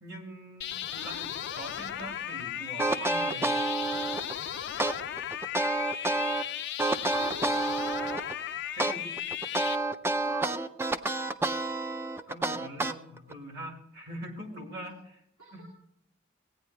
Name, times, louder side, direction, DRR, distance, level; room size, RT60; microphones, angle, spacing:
voice 1, 0.0-3.5 8.7-9.2 12.3-15.2 15.5-15.6, right 1 dB, 55° right, 3 dB, 2.1 m, -43 dB
sound 1, 0.6-9.8, left 10 dB, 55° left, 0.4 m, -36 dB
sound 2, 2.8-4.3 4.8-6.4 6.8-8.3 8.8-13.3, right 2 dB, 10° right, 0.4 m, -29 dB
voice 2, 7.0-7.5 10.2-10.7 15.4-15.7, right 2 dB, 80° right, -2 dB, 2.5 m, -43 dB
16.5 x 9.2 x 3.3 m, 0.75 s
head